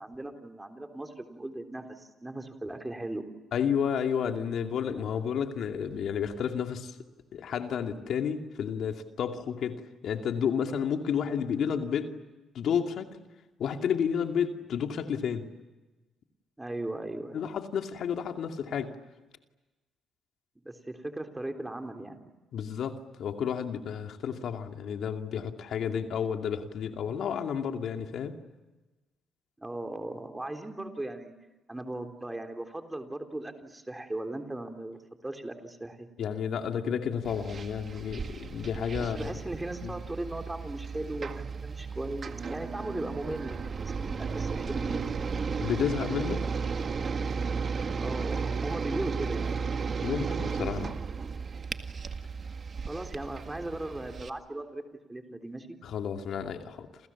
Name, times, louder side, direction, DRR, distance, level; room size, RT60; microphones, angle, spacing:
voice 1, 0.0-3.3 16.6-17.4 20.6-22.3 29.6-31.3 31.7-36.1 39.1-45.1 48.0-49.6 52.9-54.8 55.1-55.8, right 1 dB, 15° right, 5 dB, 3.6 m, -38 dB
voice 2, 3.5-7.0 7.3-9.8 10.0-12.1 12.5-13.1 13.6-15.5 17.3-18.9 22.5-28.4 36.2-39.3 39.8-39.9 45.6-46.4 50.0-51.0 55.8-56.9, left 7 dB, 70° left, 5 dB, 2.5 m, -31 dB
sound 1, 37.2-54.3, right 5 dB, 45° right, 1.9 m, -34 dB
28.5 x 28.5 x 7.3 m, 1.2 s
cardioid pair, 90°, 0 cm